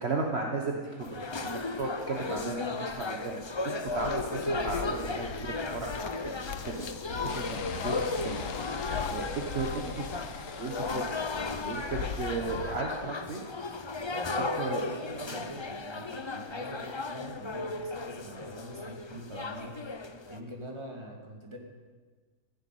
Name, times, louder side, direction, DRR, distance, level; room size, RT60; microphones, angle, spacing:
voice 1, 0.0-5.9 6.6-6.9 7.2-8.5 9.1-10.1 10.6-11.0 11.6-13.4 14.4-14.8 15.3-15.4, right 3 dB, 50° right, 0 dB, 1.6 m, -35 dB
sound 1, 1.0-20.4, left 3 dB, 30° left, 0.5 m, -35 dB
sound 2, 3.9-12.8, left 7 dB, 85° left, 1.3 m, -42 dB
sound 3, 7.3-12.4, left 6 dB, 65° left, 1.4 m, -42 dB
voice 2, 14.1-19.7 20.3-21.6, right 1 dB, 20° right, 0 dB, 2.6 m, -43 dB
15.0 x 9.7 x 9.3 m, 1.5 s
omnidirectional pair, 1.5 m